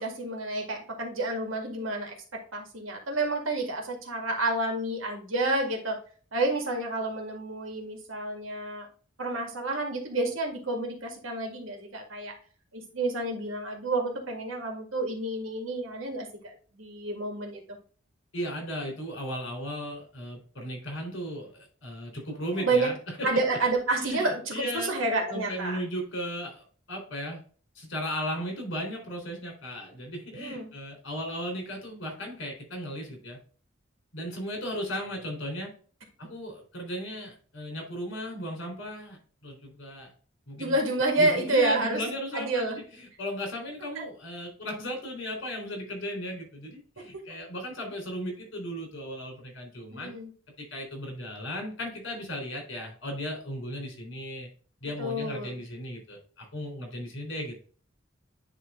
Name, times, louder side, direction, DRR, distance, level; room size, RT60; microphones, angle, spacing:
voice 1, 0.0-6.0 6.3-8.9 9.2-12.4 12.7-17.6 22.5-22.9 23.2-25.8 30.3-30.7 40.6-42.0 42.3-42.8 44.0-44.1 47.0-47.4 49.9-50.3 55.0-55.5, right 2 dB, 90° right, 2 dB, 2.1 m, -29 dB
voice 2, 18.3-23.3 23.9-24.9 25.3-27.4 27.8-33.4 34.1-35.7 36.2-40.1 40.5-40.8 41.2-50.1 50.6-54.5 54.8-57.5, equal, 65° left, 2 dB, 3.6 m, -36 dB
10.0 x 3.4 x 3.6 m, 0.41 s
head